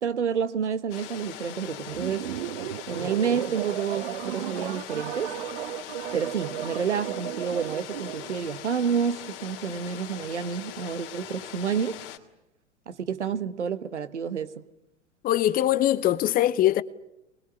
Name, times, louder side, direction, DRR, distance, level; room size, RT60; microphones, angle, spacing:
voice 1, 0.0-2.3 2.9-5.3 6.1-12.0 12.9-14.6, right 7 dB, 75° right, 1.4 m, -29 dB
sound 1, 0.9-12.2, left 12 dB, 50° left, 2.8 m, -41 dB
sound 2, 1.9-8.4, right 13 dB, 50° right, 0.9 m, -35 dB
voice 2, 15.2-16.8, left 13 dB, 25° left, 0.9 m, -22 dB
25.0 x 21.5 x 9.9 m
figure-of-eight pair, 100°, 35 cm